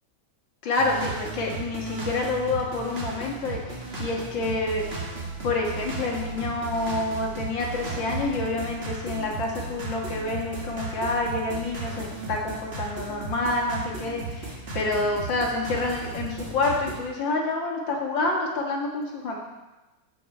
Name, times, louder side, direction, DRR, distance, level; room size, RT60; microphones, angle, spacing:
voice 1, 0.6-4.8 5.4-19.4, left 2 dB, 85° left, -1 dB, 2.4 m, -28 dB
sound 1, 0.8-16.9, right 3 dB, 35° right, 1.7 m, -35 dB
14.5 x 5.4 x 4.5 m, 1.1 s
omnidirectional pair, 2.0 m